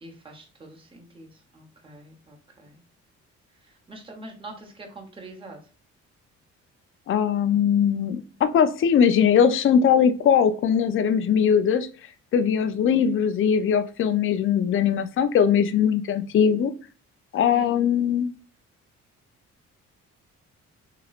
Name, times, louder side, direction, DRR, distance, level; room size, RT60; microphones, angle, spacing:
voice 1, 0.0-2.8 3.5-5.6 17.5-17.8, right 2 dB, 15° right, 0 dB, 0.9 m, -44 dB
voice 2, 7.1-11.9 12.3-16.7 17.3-18.3, left 7 dB, 45° left, 9 dB, 0.4 m, -20 dB
2.9 x 2.9 x 2.4 m, 0.38 s
cardioid pair, 90°, 30 cm